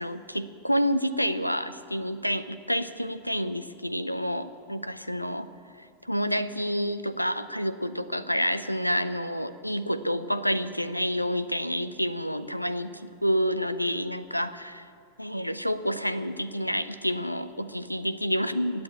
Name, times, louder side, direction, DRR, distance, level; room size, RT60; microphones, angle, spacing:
voice 1, 0.0-5.5 5.8-14.9 15.2-18.8, equal, 90° left, 14 dB, 0.5 m, -29 dB
16.0 x 8.7 x 8.5 m, 2.3 s
figure-of-eight pair, 90°, 0 cm